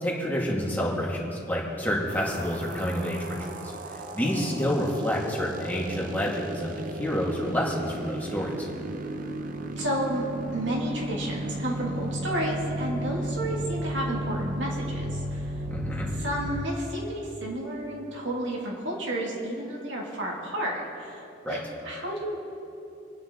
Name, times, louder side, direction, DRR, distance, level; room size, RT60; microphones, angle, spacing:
voice 1, 0.0-3.6 3.9-8.7 15.7-16.1 21.4-21.6, equal, 10° left, -4 dB, 2.5 m, -29 dB
sound 1, 2.1-16.7, right 1 dB, 45° right, 0.7 m, -34 dB
voice 2, 9.8-10.2 10.5-15.5 16.2-22.3, right 1 dB, 80° right, -3 dB, 2.8 m, -31 dB
26.5 x 9.3 x 4.1 m, 2.8 s
head